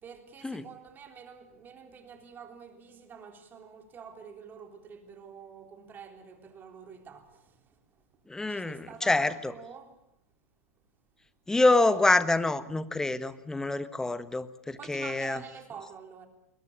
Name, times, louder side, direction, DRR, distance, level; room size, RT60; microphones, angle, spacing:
voice 1, 0.0-8.0 8.5-10.0 14.8-16.3, right 6 dB, 25° right, 3.7 m, -48 dB
voice 2, 8.3-9.5 11.5-15.4, left 2 dB, 5° left, 1.2 m, -26 dB
21.5 x 20.5 x 8.7 m
hypercardioid pair, 105°, 8 cm